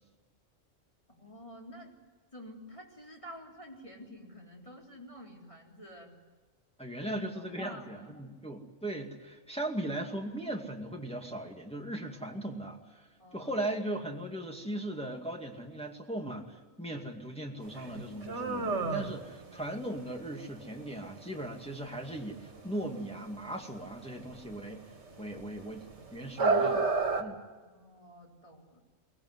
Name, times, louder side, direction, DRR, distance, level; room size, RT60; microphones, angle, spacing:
voice 1, 1.1-2.0 2.3-6.1 7.0-8.2 13.2-13.7 27.6-28.8, equal, 25° left, -1 dB, 4.0 m, -49 dB
voice 2, 6.8-13.1 13.3-24.9 25.2-26.9 27.2-27.4, right 1 dB, 5° left, 1 dB, 2.2 m, -38 dB
sound 1, 17.6-27.2, right 4 dB, 60° right, 2.3 m, -33 dB
23.5 x 19.0 x 9.6 m, 1.4 s
omnidirectional pair, 1.3 m